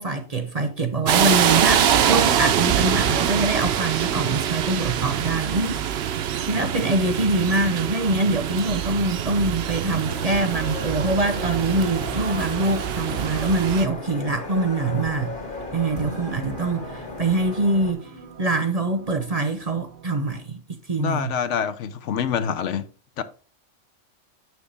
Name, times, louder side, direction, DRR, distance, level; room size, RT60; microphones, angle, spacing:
voice 1, 0.0-6.0 6.4-15.3 15.7-18.1 18.4-21.3, right 2 dB, 35° right, 0.8 m, -24 dB
sound 1, 1.1-13.9, right 9 dB, 65° right, 0.8 m, -24 dB
sound 2, 10.0-17.9, left 3 dB, 45° left, 1.8 m, -35 dB
sound 3, 13.4-20.2, right 4 dB, 85° right, 1.5 m, -45 dB
voice 2, 21.0-22.9 23.2-23.3, left 8 dB, 75° left, 1.0 m, -26 dB
7.0 x 6.2 x 3.3 m
omnidirectional pair, 1.3 m